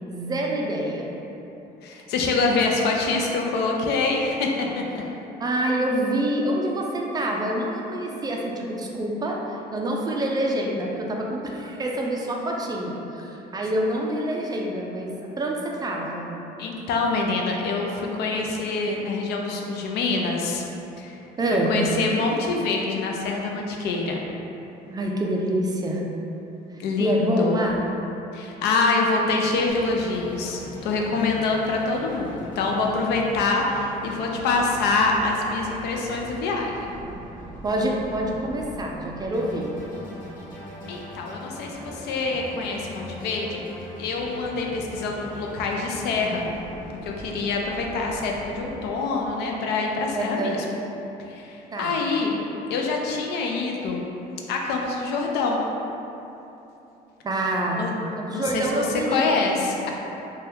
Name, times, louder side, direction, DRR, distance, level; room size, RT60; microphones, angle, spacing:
voice 1, 0.1-1.2 5.4-16.3 21.4-21.8 24.9-26.0 27.0-27.9 37.6-39.7 50.1-50.6 51.7-52.0 57.2-57.9 58.2-59.3, right 1 dB, 25° right, -1 dB, 0.3 m, -26 dB
voice 2, 1.8-5.0 16.6-20.6 21.0-21.2 21.5-24.2 26.8-27.6 28.3-36.9 40.9-43.6 44.0-46.5 46.9-50.6 51.3-52.4 52.7-54.1 54.5-55.6 57.8-57.9 58.3-59.9, left 3 dB, 75° left, 0 dB, 0.4 m, -25 dB
sound 1, 29.7-48.9, equal, 55° left, 0.9 m, -41 dB
2.7 x 2.2 x 3.4 m, 3.0 s
cardioid pair, 110°, 17 cm